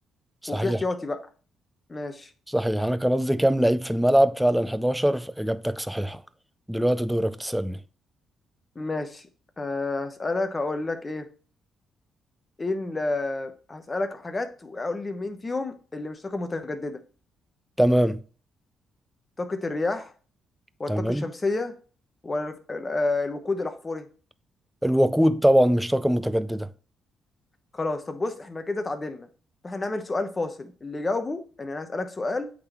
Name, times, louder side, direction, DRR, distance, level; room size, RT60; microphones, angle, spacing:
voice 1, 0.5-1.2 1.9-2.3 8.7-9.2 9.6-11.3 12.6-17.0 19.4-20.1 20.8-21.7 22.2-24.1 27.7-29.3 29.6-32.5, left 2 dB, 25° left, 0.9 m, -30 dB
voice 2, 2.5-6.2 6.7-7.8 17.8-18.2 20.9-21.2 24.8-26.7, equal, 5° right, 0.4 m, -22 dB
8.5 x 3.9 x 3.0 m
cardioid pair, 90°, 0 cm